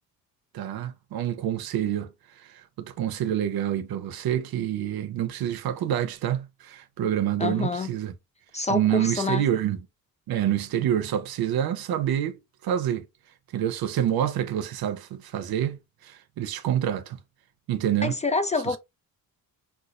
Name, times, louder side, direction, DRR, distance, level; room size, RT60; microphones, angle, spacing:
voice 1, 0.5-2.1 2.4-8.1 8.7-9.8 10.3-12.4 12.6-13.1 13.5-17.2 17.7-18.1, right 10 dB, 80° right, 0.6 m, -27 dB
voice 2, 7.4-7.9 8.5-9.4 18.0-18.8, left 3 dB, 20° left, 0.3 m, -27 dB
4.0 x 2.4 x 2.4 m
cardioid pair, 95°, 36 cm